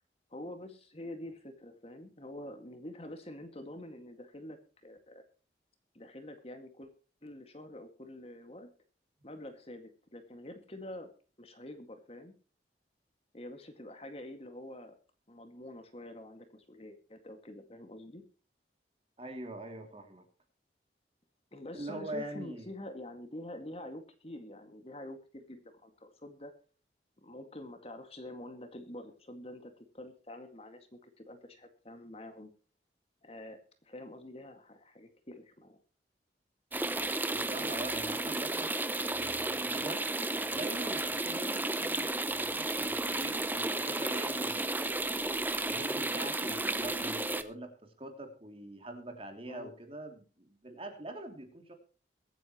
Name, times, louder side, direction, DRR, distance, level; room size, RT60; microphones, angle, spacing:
voice 1, 0.3-5.2 5.9-6.9 7.2-8.7 9.2-11.1 11.4-12.3 13.3-14.9 15.3-18.2 21.5-26.5 27.2-32.5 33.2-35.8 46.5-46.7 49.5-49.7, left 1 dB, 35° left, 7 dB, 2.1 m, -46 dB
voice 2, 19.2-20.3 21.7-22.7 37.3-45.1 45.6-51.7, right 1 dB, 30° right, 5 dB, 2.8 m, -44 dB
sound 1, 36.7-47.4, right 2 dB, 10° right, 0.8 m, -33 dB
23.5 x 9.2 x 3.1 m, 0.38 s
head